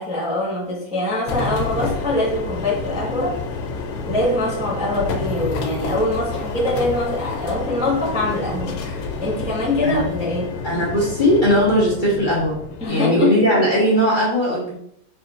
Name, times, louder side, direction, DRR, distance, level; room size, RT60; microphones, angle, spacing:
voice 1, 0.0-3.4 4.1-10.6 12.8-13.3, left 1 dB, 10° right, -7 dB, 0.4 m, -23 dB
sound 1, 1.3-12.9, left 4 dB, 85° left, 1.5 m, -29 dB
voice 2, 10.6-12.6 12.8-14.7, equal, 30° left, -7 dB, 0.9 m, -18 dB
4.2 x 4.1 x 2.4 m, 0.72 s
omnidirectional pair, 2.3 m